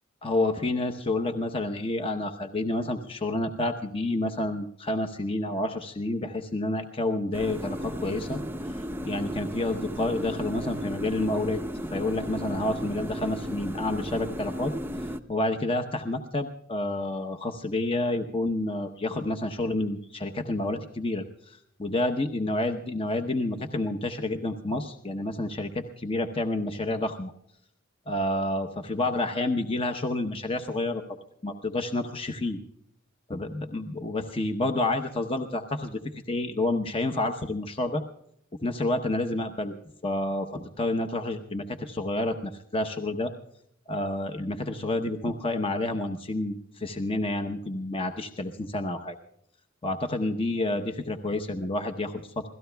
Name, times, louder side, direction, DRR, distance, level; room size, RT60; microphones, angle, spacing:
voice 1, 0.2-8.4 8.7-11.6 11.9-14.7 15.3-27.3 28.1-31.0 31.4-32.6 33.3-38.0 38.6-39.8 40.0-43.3 43.9-49.2 49.8-52.5, left 2 dB, 25° left, 7 dB, 0.8 m, -29 dB
sound 1, 7.3-15.2, equal, 10° right, 0.6 m, -35 dB
27.5 x 17.0 x 2.3 m, 0.71 s
head